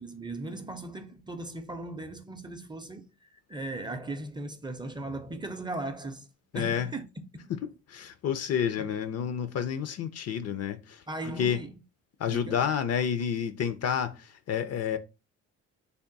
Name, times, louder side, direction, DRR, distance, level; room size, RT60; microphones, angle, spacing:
voice 1, 0.0-6.3 6.5-7.1 7.4-7.5 8.8-8.9 11.1-11.7 12.2-12.7, right 2 dB, 15° right, 0.5 m, -38 dB
voice 2, 6.5-6.9 7.9-11.0 11.4-11.6 12.2-15.0, left 8 dB, 55° left, 0.5 m, -29 dB
3.5 x 2.2 x 3.9 m
cardioid pair, 90°, 30 cm